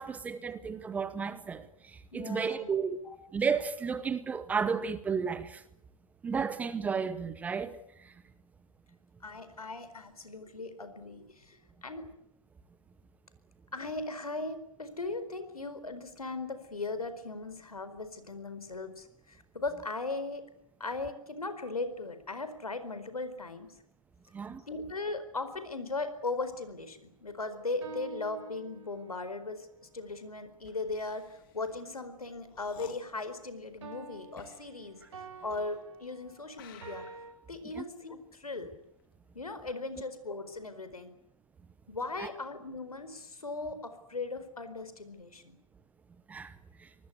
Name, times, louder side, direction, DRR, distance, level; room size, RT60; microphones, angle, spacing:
voice 1, 0.0-1.7 2.1-3.0 3.3-5.6 6.2-7.8 24.3-24.6 37.8-37.9 42.2-42.3 46.3-46.5, right 5 dB, 10° right, 0.9 m, -32 dB
voice 2, 2.1-2.7 3.0-3.2 9.2-12.0 13.7-20.5 20.8-23.8 24.7-37.1 37.5-38.7 39.3-41.1 41.9-45.6, left 3 dB, 85° left, 4.4 m, -38 dB
sound 1, 27.4-29.2 33.8-37.3, right 4 dB, 55° right, 6.9 m, -48 dB
sound 2, 30.5-36.1 36.5-39.4 39.7-40.2, left 10 dB, 35° left, 3.1 m, -56 dB
26.0 x 20.0 x 8.3 m
figure-of-eight pair, 135°, 19 cm